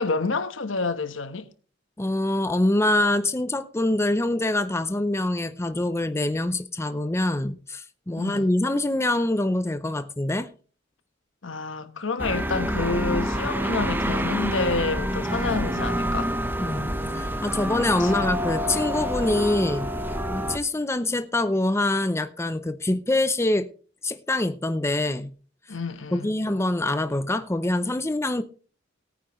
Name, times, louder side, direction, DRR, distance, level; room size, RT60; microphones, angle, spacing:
voice 1, 0.0-1.5 8.2-8.5 11.4-16.3 18.0-18.3 25.7-26.4, left 3 dB, 75° left, 1.2 m, -28 dB
voice 2, 2.0-10.5 16.6-16.9 17.1-19.9 20.3-23.7 24.0-25.3 26.1-28.4, left 1 dB, 15° left, 0.6 m, -25 dB
sound 1, 12.2-20.6, equal, 10° right, 1.1 m, -27 dB
18.0 x 9.4 x 3.1 m
head